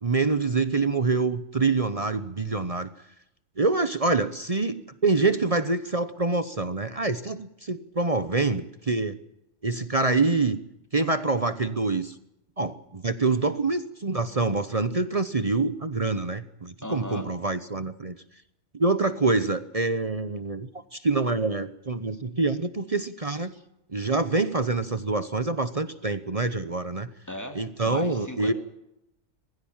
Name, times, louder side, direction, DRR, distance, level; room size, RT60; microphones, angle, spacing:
voice 1, 0.0-2.9 3.6-9.2 9.6-10.6 10.9-12.1 12.6-18.2 18.7-23.5 23.9-27.1 27.5-28.5, right 3 dB, 30° right, 12 dB, 0.9 m, -26 dB
voice 2, 16.8-17.3 27.3-28.5, left 1 dB, 15° left, 5 dB, 3.0 m, -37 dB
21.0 x 16.0 x 8.8 m, 0.84 s
omnidirectional pair, 1.3 m